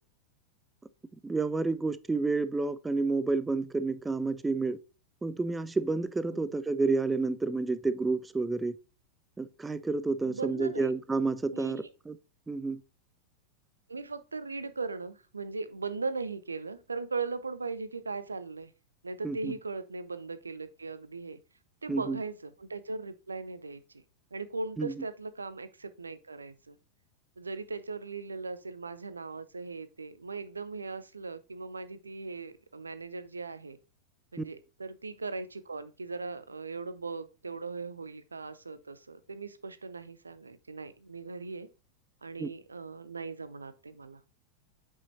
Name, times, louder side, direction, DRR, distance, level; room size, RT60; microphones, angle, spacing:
voice 1, 1.2-4.8 5.2-8.8 9.4-12.2 12.5-12.8 19.2-19.5 21.9-22.2 24.8-24.9 34.4-34.5 42.4-42.5, right 3 dB, 10° right, 0.4 m, -30 dB
voice 2, 10.2-10.9 11.5-11.9 13.9-18.7 19.0-21.4 21.8-24.0 24.3-26.8 27.4-33.8 34.3-41.7 42.2-44.2, right 4 dB, 75° right, 0.6 m, -39 dB
8.2 x 5.5 x 2.8 m
figure-of-eight pair, 90°, 0 cm